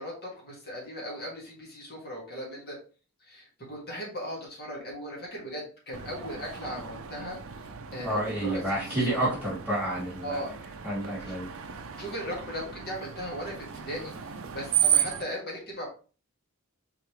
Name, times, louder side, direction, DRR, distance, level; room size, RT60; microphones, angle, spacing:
voice 1, 0.0-2.8 3.3-7.4 7.9-9.4 10.2-10.5 11.3-11.4 12.0-15.9, equal, 45° left, -3 dB, 1.8 m, -38 dB
Screech, 5.9-15.2, right 10 dB, 65° right, 0.5 m, -34 dB
voice 2, 8.0-10.4 10.8-11.5, right 1 dB, 5° left, -7 dB, 1.8 m, -29 dB
4.8 x 3.5 x 3.0 m, 0.37 s
head